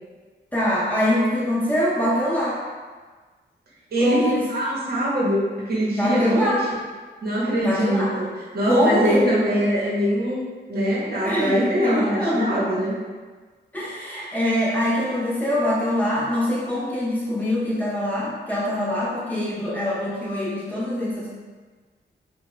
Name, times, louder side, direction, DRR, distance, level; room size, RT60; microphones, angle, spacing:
voice 1, 0.5-2.6 4.0-4.4 6.0-6.7 7.6-8.1 8.7-9.3 11.2-12.5 13.7-21.3, left 1 dB, 10° left, -8 dB, 0.6 m, -23 dB
voice 2, 3.9-6.8 7.2-10.4 10.7-13.0, equal, 55° right, -5 dB, 0.8 m, -23 dB
2.8 x 2.1 x 3.1 m, 1.4 s
wide cardioid pair, 140°, 19 cm